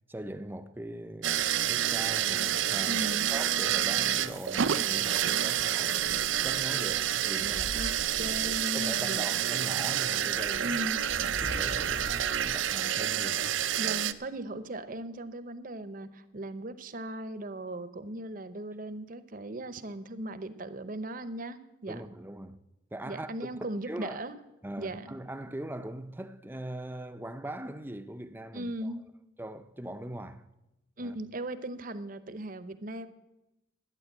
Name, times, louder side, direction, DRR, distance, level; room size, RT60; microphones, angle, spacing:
voice 1, 0.1-7.8 8.2-8.4 8.7-10.8 11.2-13.6 21.9-22.6 22.9-23.3 23.6-24.2 24.6-28.9 29.4-30.5 31.0-31.1, right 1 dB, 10° right, 0.5 m, -41 dB
sound 1, 1.2-14.1, right 10 dB, 75° right, 0.5 m, -29 dB
voice 2, 2.9-3.3 7.7-9.4 10.6-11.0 13.8-22.1 23.0-24.4 24.8-25.1 28.5-29.0 31.0-33.1, right 1 dB, 45° right, 0.8 m, -38 dB
sound 2, 5.6-9.2 10.1-13.8, left 1 dB, 30° left, 0.7 m, -44 dB
11.5 x 9.5 x 7.9 m
head